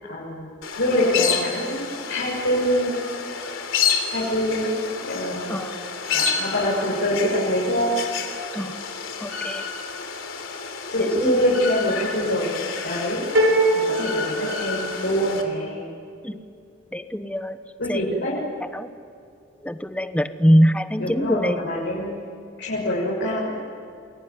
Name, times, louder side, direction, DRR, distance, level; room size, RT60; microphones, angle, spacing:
voice 1, 0.1-0.5 0.8-2.9 4.1-4.7 5.0-5.5 6.1-7.9 10.9-13.3 13.7-15.9 17.8-18.3 21.0-22.1 22.6-23.5, equal, 70° left, -6 dB, 6.5 m, -24 dB
sound 1, 0.6-15.4, left 6 dB, 85° left, 3.4 m, -30 dB
voice 2, 9.2-9.6 11.2-11.4 16.2-16.4 16.9-17.6 17.9-18.0 18.7-18.9 19.6-21.6, equal, 5° left, 9 dB, 1.1 m, -22 dB
sound 2, 13.3-15.3, right 1 dB, 75° right, 6.3 m, -22 dB
28.5 x 21.5 x 9.7 m, 2.4 s
head